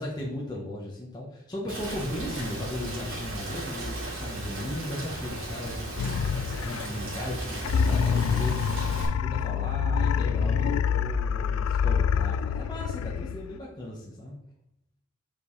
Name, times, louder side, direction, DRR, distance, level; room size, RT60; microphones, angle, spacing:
voice 1, 0.0-14.4, left 1 dB, 20° left, -4 dB, 1.1 m, -37 dB
Rain, 1.7-9.1, right 1 dB, 75° right, 2.8 m, -36 dB
sound 1, 6.0-7.1 7.6-13.6, left 7 dB, 85° left, 0.3 m, -26 dB
7.8 x 5.2 x 3.2 m, 0.79 s
head